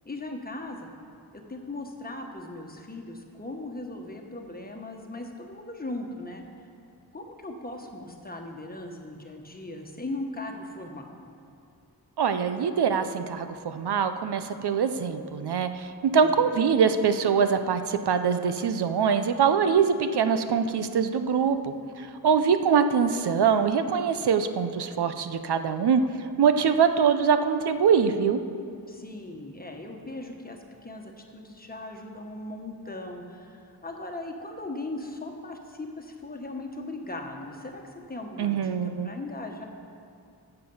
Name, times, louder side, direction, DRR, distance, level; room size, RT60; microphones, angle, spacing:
voice 1, 0.0-0.9 1.3-6.4 7.1-11.2 16.2-16.5 28.9-39.7, left 2 dB, 25° left, 2 dB, 1.2 m, -38 dB
voice 2, 12.2-26.0 26.4-28.4 38.4-39.1, right 6 dB, 80° right, 9 dB, 0.7 m, -23 dB
15.5 x 6.9 x 5.4 m, 2.5 s
wide cardioid pair, 110°, 39 cm